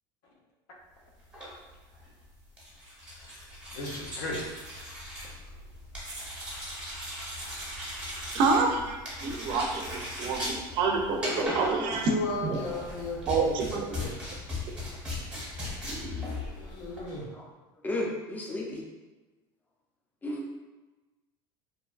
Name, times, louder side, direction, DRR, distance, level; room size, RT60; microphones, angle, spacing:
sound 1, 1.2-17.2, left 1 dB, 10° right, 0.8 m, -38 dB
voice 1, 3.7-4.4 11.4-11.6 12.0-14.2 16.5-17.3, left 2 dB, 85° left, -2 dB, 0.7 m, -35 dB
voice 2, 8.3-12.1 12.5-12.6 13.3-14.0, right 4 dB, 50° right, 2 dB, 0.4 m, -28 dB
voice 3, 17.8-18.8 20.2-20.5, left 1 dB, 15° left, -2 dB, 0.4 m, -33 dB
2.6 x 2.2 x 2.3 m, 1.2 s
supercardioid pair, 130°, 11 cm